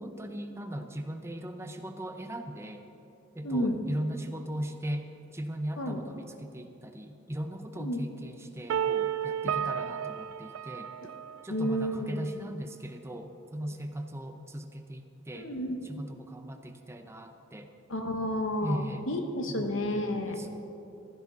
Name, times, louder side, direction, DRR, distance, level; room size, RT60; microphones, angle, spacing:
voice 1, 0.0-2.9 3.3-10.9 11.4-15.5 15.8-17.7 18.6-19.1 19.5-20.5, right 1 dB, 15° right, 6 dB, 0.6 m, -38 dB
voice 2, 3.4-3.8 5.8-6.0 7.8-8.0 9.4-9.5 11.0-11.1 11.5-12.3 15.3-15.8 17.9-20.4, equal, 75° left, 5 dB, 1.2 m, -31 dB
sound 1, 8.7-11.6, right 9 dB, 90° right, 0.3 m, -32 dB
15.0 x 13.5 x 4.0 m, 2.8 s
head